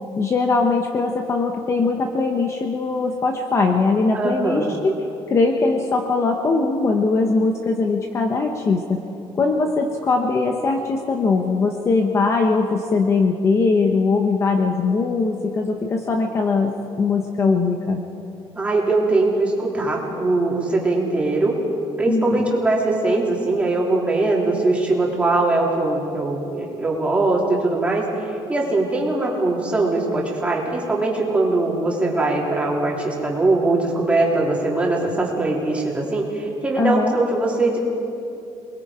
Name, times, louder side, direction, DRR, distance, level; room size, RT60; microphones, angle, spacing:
voice 1, 0.2-4.9 5.3-9.0 9.4-18.0 22.1-22.6 36.8-37.2, left 3 dB, 25° left, 3 dB, 1.1 m, -21 dB
voice 2, 4.1-4.7 18.5-21.5 22.0-28.1 28.5-37.8, right 2 dB, 10° right, -3 dB, 3.3 m, -21 dB
28.0 x 21.0 x 5.1 m, 2.8 s
cardioid pair, 175°, 11 cm